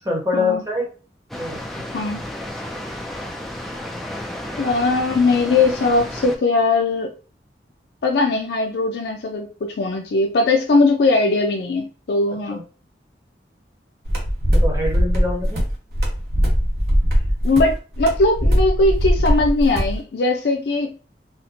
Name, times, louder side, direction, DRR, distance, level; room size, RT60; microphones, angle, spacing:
voice 1, 0.0-0.8 1.3-2.1 12.5-12.6 14.5-15.6, left 2 dB, 15° right, -2 dB, 1.0 m, -25 dB
Water, 1.3-6.4, left 1 dB, ahead, 0.3 m, -32 dB
voice 2, 4.6-7.1 8.0-12.6 17.4-21.0, left 3 dB, 70° left, 3 dB, 0.4 m, -19 dB
sound 1, 14.1-20.0, equal, 60° right, 1.1 m, -20 dB
4.2 x 2.1 x 2.7 m, 0.36 s
head